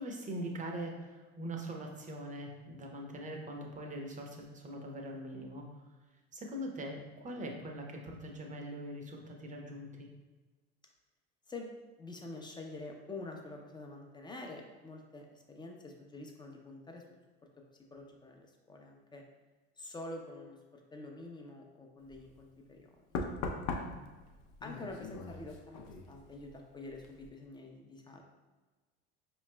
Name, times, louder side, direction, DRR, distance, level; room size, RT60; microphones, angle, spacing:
voice 1, 0.0-5.7 6.3-10.1 23.5-23.9, right 1 dB, 25° right, 2 dB, 0.8 m, -42 dB
voice 2, 12.0-17.0 17.9-19.2 19.8-23.0 24.6-28.3, left 2 dB, 15° left, 1 dB, 0.6 m, -47 dB
Knock, 22.1-22.3 23.1-26.6 26.9-27.3, left 3 dB, 65° left, 0.6 m, -41 dB
4.7 x 3.1 x 2.2 m, 1.2 s
hypercardioid pair, 85°, 30 cm